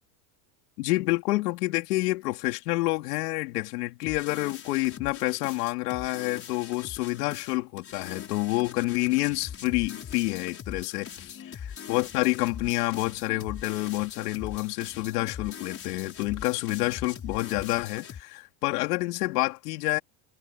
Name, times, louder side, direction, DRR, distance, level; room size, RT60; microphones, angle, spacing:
voice 1, 0.8-20.0, left 21 dB, 85° left, 3.3 m, -28 dB
sound 1, 4.0-18.2, left 8 dB, 30° left, 5.9 m, -42 dB
supercardioid pair, 125°, 45 cm